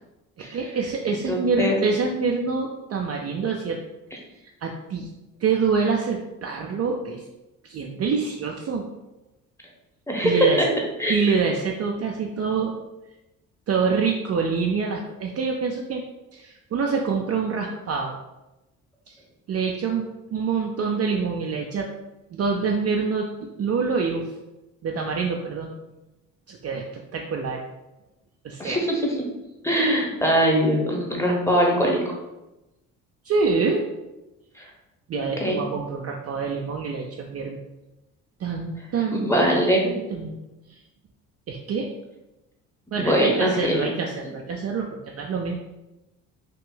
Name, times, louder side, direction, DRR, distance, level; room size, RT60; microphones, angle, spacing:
voice 1, 0.4-3.8 4.6-5.1 5.4-7.3 7.6-8.9 10.2-10.7 11.1-12.7 13.7-16.0 16.3-18.2 19.1-19.2 19.5-21.9 22.3-23.3 23.6-24.3 24.8-25.7 26.5-27.6 28.4-28.8 33.2-33.8 35.1-37.6 38.4-40.4 40.7-40.8 41.5-41.9 42.9-45.5, right 5 dB, 40° right, 1 dB, 0.5 m, -26 dB
voice 2, 1.3-1.8 10.1-10.7 11.0-11.2 28.6-29.0 29.6-32.1 34.6-34.7 35.1-35.6 39.1-39.8 43.0-43.9, equal, 5° left, -1 dB, 1.0 m, -22 dB
2.8 x 2.4 x 3.8 m, 0.99 s
hypercardioid pair, 55°, 41 cm